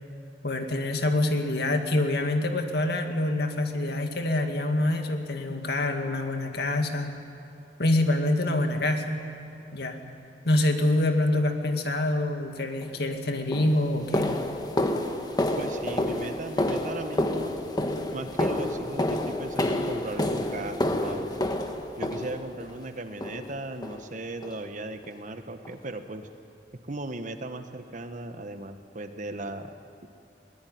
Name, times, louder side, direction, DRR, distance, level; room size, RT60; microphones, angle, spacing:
voice 1, 0.4-7.2 7.8-9.2 9.7-10.0 10.4-14.3, left 1 dB, 65° left, 5 dB, 2.1 m, -26 dB
sound 1, 12.8-13.0 13.5-22.7 23.2-23.6 23.8-24.0 24.4-24.6 25.0-25.1 25.6-25.7, left 1 dB, 25° left, 1.4 m, -29 dB
voice 2, 15.6-17.5 18.1-21.3 22.0-26.3 26.9-29.7 30.0-30.1, right 2 dB, 45° right, 8 dB, 1.3 m, -37 dB
21.0 x 19.0 x 9.4 m, 2.7 s
head